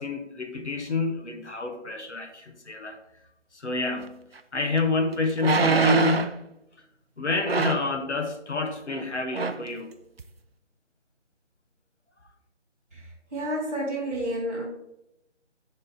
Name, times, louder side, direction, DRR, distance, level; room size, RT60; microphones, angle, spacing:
voice 1, 0.0-3.0 3.5-4.2 4.5-6.4 7.2-9.9, left 3 dB, 70° left, 4 dB, 1.3 m, -28 dB
sound 1, 4.4-4.5 5.4-6.4 7.5-7.9 8.9-9.1 9.3-9.7 10.2-10.3, right 5 dB, 55° right, 0.5 m, -24 dB
voice 2, 12.9-14.7, right 1 dB, 15° right, -14 dB, 1.4 m, -30 dB
6.4 x 3.8 x 5.6 m, 0.85 s
figure-of-eight pair, 180°, 36 cm